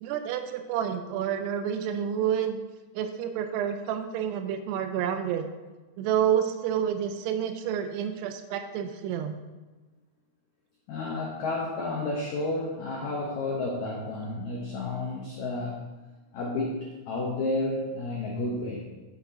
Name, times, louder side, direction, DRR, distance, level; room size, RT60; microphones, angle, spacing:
voice 1, 0.0-2.6 2.9-5.5 6.0-9.4, right 9 dB, 80° right, 8 dB, 2.6 m, -29 dB
voice 2, 10.9-15.9 16.3-18.8, left 2 dB, 85° left, -2 dB, 1.6 m, -31 dB
9.5 x 7.8 x 2.8 m, 1.2 s
omnidirectional pair, 4.9 m